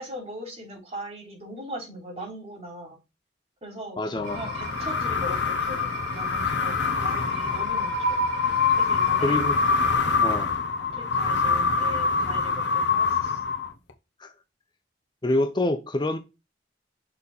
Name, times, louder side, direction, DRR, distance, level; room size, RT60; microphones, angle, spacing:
voice 1, 0.0-3.0 3.6-5.9 6.2-8.5 8.8-9.4 10.9-13.4, equal, 35° right, 3.5 m, -40 dB
voice 2, 4.0-4.5 9.2-9.6 10.2-10.5 14.2-14.3 15.2-16.2, left 1 dB, 25° left, 0.6 m, -26 dB
sound 1, 4.2-13.9, left 5 dB, 90° left, 1.1 m, -25 dB
sound 2, 4.2-10.0, right 3 dB, 75° right, 3.1 m, -39 dB
6.6 x 4.3 x 3.6 m
head